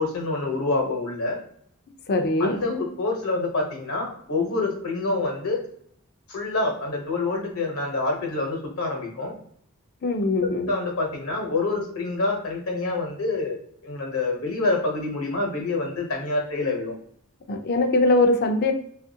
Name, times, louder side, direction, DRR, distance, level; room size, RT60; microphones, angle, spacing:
voice 1, 0.0-1.4 2.4-5.6 6.3-9.3 10.6-13.6 13.8-16.9, left 3 dB, 85° left, 0 dB, 1.0 m, -27 dB
voice 2, 2.1-2.6 10.0-10.7 17.5-18.7, left 2 dB, 45° left, 5 dB, 0.4 m, -21 dB
2.7 x 2.5 x 2.7 m, 0.65 s
head